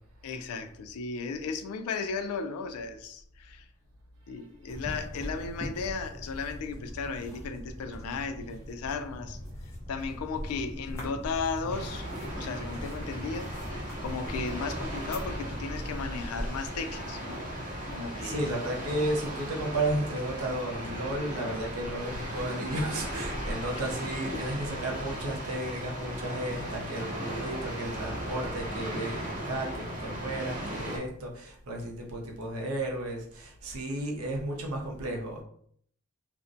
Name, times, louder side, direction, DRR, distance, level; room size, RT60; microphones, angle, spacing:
voice 1, 0.2-3.6 4.3-9.4 9.9-13.5 14.0-17.4 17.9-18.4 23.8-23.9 24.3-24.4, left 4 dB, 85° left, 0.3 m, -35 dB
sound 1, 4.7-16.5, equal, 10° left, 0.6 m, -40 dB
sound 2, 11.7-31.0, right 1 dB, 35° right, 0.6 m, -37 dB
voice 2, 18.2-35.4, right 1 dB, 80° right, 0.6 m, -33 dB
2.5 x 2.1 x 2.5 m
head